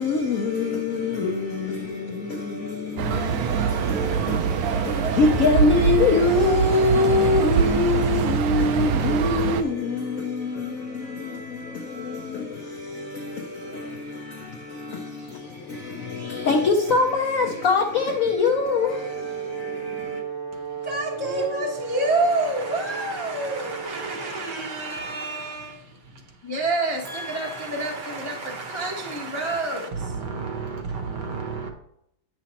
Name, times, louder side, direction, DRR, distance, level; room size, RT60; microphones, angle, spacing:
voice 1, 0.0-20.2, left 4 dB, 70° left, 0.7 m, -25 dB
sound 1, 3.0-9.6, right 7 dB, 80° right, 1.5 m, -23 dB
Brass instrument, 18.5-24.5, right 7 dB, 5° right, 0.9 m, -35 dB
voice 2, 20.8-30.9, right 2 dB, 30° left, 0.5 m, -29 dB
voice 3, 22.7-25.6 27.2-31.7, right 4 dB, 60° right, 1.4 m, -35 dB
9.5 x 6.1 x 2.9 m
omnidirectional pair, 2.3 m